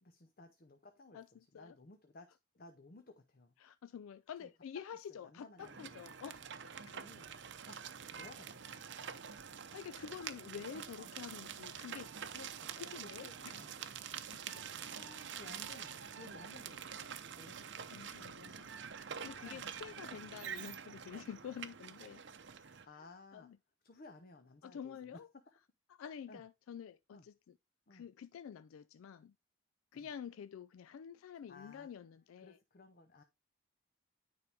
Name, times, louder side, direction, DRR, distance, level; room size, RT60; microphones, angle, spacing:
voice 1, 0.0-3.5 4.4-4.5 5.1-6.0 6.9-7.8 8.1-9.2 11.0-11.1 12.3-13.9 14.7-17.9 19.4-19.7 20.0-20.1 20.4-20.5 22.8-23.5 23.8-25.2 26.3-26.4 27.1-27.3 27.9-28.1 29.9-30.1 31.5-31.9 32.4-33.2, left 3 dB, 45° left, 0.7 m, -57 dB
voice 2, 1.1-1.7 3.6-6.4 9.7-12.1 12.8-13.6 14.2-14.7 17.9-18.7 19.2-22.2 22.6-22.9 23.3-23.6 24.6-25.3 26.0-27.5 27.9-29.3 29.9-32.6, left 8 dB, 80° left, 0.3 m, -49 dB
sound 1, 5.6-22.9, right 7 dB, 55° right, 0.7 m, -47 dB
9.6 x 4.7 x 3.4 m
head